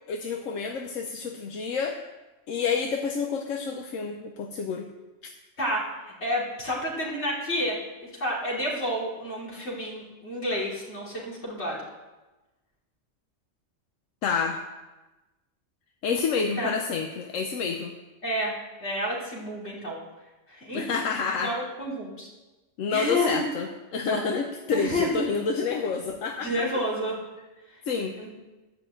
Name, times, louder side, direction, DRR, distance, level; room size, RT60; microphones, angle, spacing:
voice 1, 0.1-2.0 2.5-4.9 14.2-14.6 16.0-17.9 20.7-21.5 22.8-26.7 27.9-28.1, left 5 dB, 85° left, 3 dB, 1.1 m, -29 dB
voice 2, 5.6-7.8 8.1-11.9 16.6-16.7 18.2-18.5 18.8-20.0 20.5-20.8 21.4-22.3 22.9-23.4 24.0-24.3 24.7-25.2 26.4-27.2 27.7-27.8 28.2-28.3, equal, 60° left, -4 dB, 3.2 m, -30 dB
11.0 x 5.9 x 7.8 m, 1.1 s
omnidirectional pair, 1.3 m